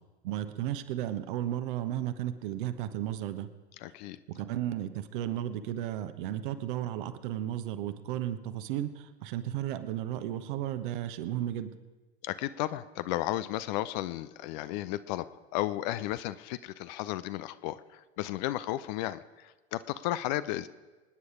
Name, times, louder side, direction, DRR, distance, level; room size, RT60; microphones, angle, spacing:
voice 1, 0.2-3.5 4.3-11.7, right 12 dB, 50° right, 10 dB, 1.2 m, -34 dB
voice 2, 3.8-4.2 12.2-20.7, left 15 dB, 40° left, 15 dB, 0.6 m, -34 dB
26.0 x 9.7 x 5.0 m, 1.2 s
figure-of-eight pair, 85°, 33 cm